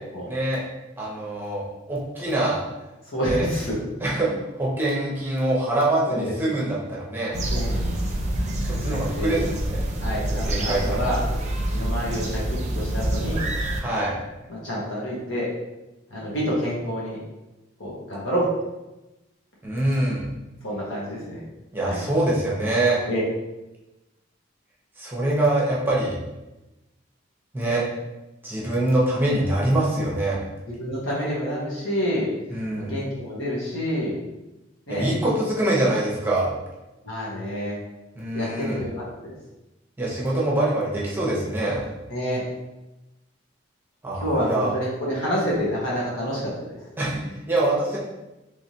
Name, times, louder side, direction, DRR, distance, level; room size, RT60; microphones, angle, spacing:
voice 1, 0.3-0.6 1.0-2.6 3.3-3.4 4.0-4.3 4.6-7.4 8.6-9.8 10.5-11.1 13.8-14.2 19.6-20.2 21.7-23.0 25.0-26.1 27.5-27.8 28.4-30.4 32.5-32.9 34.9-36.5 38.2-38.8 40.0-41.8 44.0-44.7 47.0-48.0, right 1 dB, 10° right, -6 dB, 0.8 m, -24 dB
voice 2, 3.1-3.8 6.1-6.6 7.5-7.9 8.9-9.4 10.0-11.2 11.7-12.4 12.7-13.4 14.5-15.5 16.1-17.2 17.8-18.4 20.6-21.4 21.8-22.0 23.1-23.2 30.7-32.3 32.8-34.2 34.9-35.1 37.0-37.8 38.3-39.3 42.1-42.4 44.2-46.8, equal, 80° left, -6 dB, 1.4 m, -28 dB
sound 1, 7.3-13.8, right 1 dB, 40° right, 0.5 m, -26 dB
3.3 x 3.2 x 2.8 m, 1.0 s
head